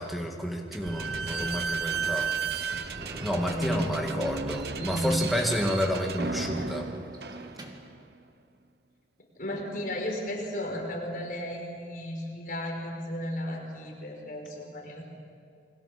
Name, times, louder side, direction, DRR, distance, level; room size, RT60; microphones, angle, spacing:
voice 1, 0.0-2.3 2.8-6.9, equal, ahead, 1 dB, 2.3 m, -30 dB
Slam / Squeak, 0.7-8.0, right 5 dB, 60° right, 1.0 m, -34 dB
Sliding door / Slam, 1.3-7.9, right 1 dB, 25° right, 2.2 m, -47 dB
voice 2, 3.2-4.0 4.7-5.1 9.4-15.0, equal, 50° left, 0 dB, 5.2 m, -34 dB
29.5 x 22.5 x 7.0 m, 2.4 s
head